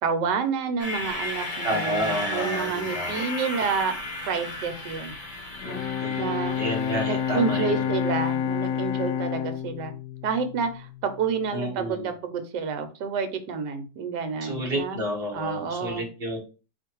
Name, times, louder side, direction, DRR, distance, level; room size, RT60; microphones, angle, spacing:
voice 1, 0.0-3.9 4.3-5.1 5.6-5.8 6.2-6.6 7.1-9.9 10.2-15.0 15.3-16.1, right 5 dB, 75° right, 8 dB, 1.3 m, -29 dB
sound 1, 0.8-8.4, left 2 dB, 35° left, 0.6 m, -34 dB
voice 2, 1.6-3.2 6.0-7.9 11.5-12.1 14.4-16.4, right 1 dB, 35° right, 0 dB, 1.3 m, -30 dB
Bowed string instrument, 5.4-11.1, left 9 dB, 80° left, 1.2 m, -29 dB
4.5 x 2.5 x 4.5 m, 0.34 s
omnidirectional pair, 2.0 m